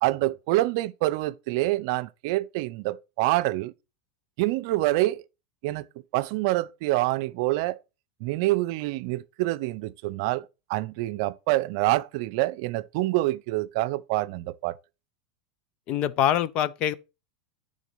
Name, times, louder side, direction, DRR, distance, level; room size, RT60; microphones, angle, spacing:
voice 1, 0.0-3.7 4.4-5.2 5.6-5.9 6.1-7.8 8.2-14.8, right 18 dB, 55° right, 0.6 m, -26 dB
voice 2, 15.9-16.9, left 10 dB, 40° left, 0.6 m, -24 dB
9.2 x 3.9 x 5.6 m
supercardioid pair, 150°, 3 cm